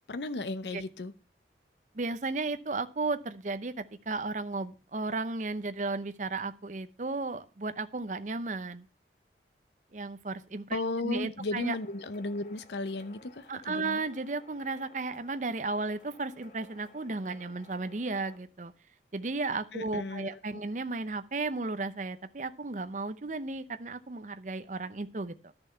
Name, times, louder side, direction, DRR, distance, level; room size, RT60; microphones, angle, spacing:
voice 1, 0.1-1.1 10.7-14.0 19.7-20.4, left 2 dB, 80° left, 14 dB, 0.7 m, -35 dB
voice 2, 1.9-8.9 9.9-11.8 13.5-18.7 19.1-25.5, right 3 dB, 45° right, 11 dB, 0.7 m, -34 dB
sound 1, 11.5-18.4, left 2 dB, 45° left, 1.5 m, -57 dB
11.5 x 6.8 x 5.7 m, 0.34 s
head